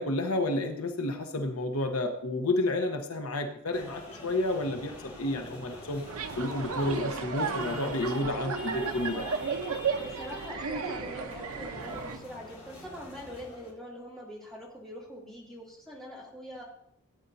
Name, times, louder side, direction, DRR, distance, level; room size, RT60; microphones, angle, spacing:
voice 1, 0.0-4.9 5.2-6.0 6.4-9.3, left 2 dB, 80° left, 4 dB, 1.1 m, -30 dB
sound 1, 3.7-13.7, left 2 dB, 30° left, 2.9 m, -47 dB
sound 2, 6.1-12.2, right 5 dB, 80° right, 0.9 m, -34 dB
voice 2, 10.0-16.6, equal, ahead, -6 dB, 2.8 m, -43 dB
17.0 x 9.1 x 2.8 m, 0.70 s
head